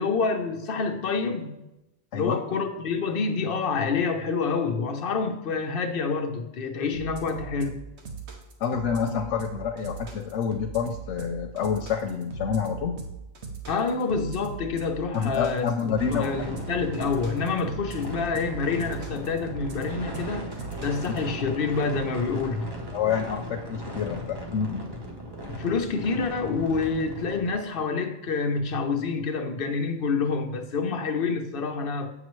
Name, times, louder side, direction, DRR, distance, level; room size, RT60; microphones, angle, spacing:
voice 1, 0.0-1.5 2.1-7.8 13.7-20.5 20.8-22.7 25.5-32.1, left 4 dB, 55° left, 5 dB, 0.9 m, -27 dB
sound 1, 6.9-21.2, right 5 dB, 70° right, 1.2 m, -39 dB
voice 2, 8.6-13.0 15.1-16.5 21.1-21.2 22.9-24.9, left 7 dB, 90° left, 4 dB, 0.9 m, -28 dB
sound 2, 16.0-27.5, equal, 25° right, 0.8 m, -38 dB
8.0 x 5.9 x 3.1 m, 0.93 s
omnidirectional pair, 1.2 m